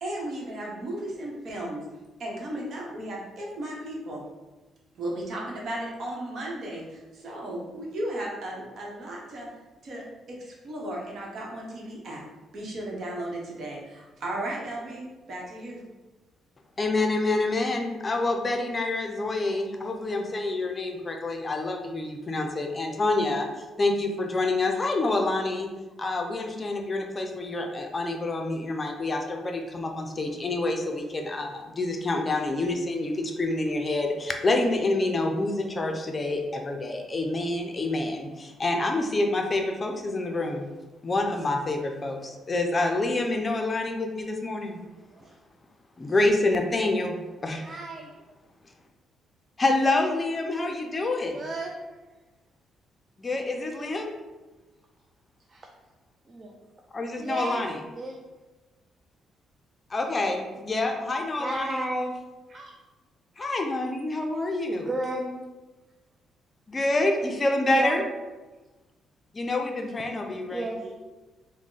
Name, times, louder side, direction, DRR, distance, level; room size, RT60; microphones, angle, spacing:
voice 1, 0.0-1.8 2.2-4.2 4.9-9.5 9.8-12.2 12.5-15.9, right 1 dB, 60° right, -2 dB, 1.0 m, -35 dB
voice 2, 16.8-25.7 26.0-40.7 41.0-44.8 46.0-47.2 47.4-47.6 49.6-51.4 53.2-54.2 56.9-57.8 59.9-61.9 63.4-64.9 66.7-68.0 69.3-70.7, left 2 dB, 30° left, 3 dB, 0.5 m, -27 dB
voice 3, 47.6-48.1 51.3-51.7 55.5-55.7 56.3-56.6 57.2-57.6 57.9-58.2 61.4-62.1 62.5-62.7 64.7-65.3 67.7-68.0 70.1-70.2 70.5-70.9, right 1 dB, 30° right, 0 dB, 0.4 m, -33 dB
3.5 x 2.1 x 3.9 m, 1.2 s
cardioid pair, 90°, 0 cm